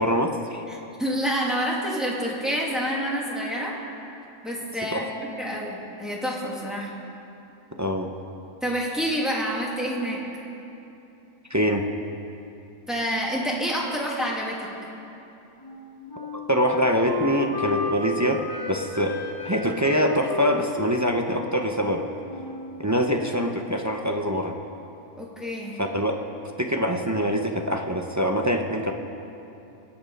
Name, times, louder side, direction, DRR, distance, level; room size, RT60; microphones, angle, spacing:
voice 1, 0.0-0.6 4.9-5.0 7.8-8.1 11.5-11.8 16.3-18.4 18.7-19.2 19.4-22.0 22.8-24.5 25.8-26.1 26.6-28.9, equal, 15° right, 2 dB, 0.6 m, -24 dB
voice 2, 0.7-3.8 4.4-6.9 8.6-10.2 12.9-14.7 25.2-25.8, equal, ahead, -4 dB, 2.4 m, -28 dB
Wind instrument woodwind instrument, 15.6-23.1, left 3 dB, 15° left, 1.2 m, -33 dB
23.0 x 8.8 x 5.4 m, 2.8 s
omnidirectional pair, 1.5 m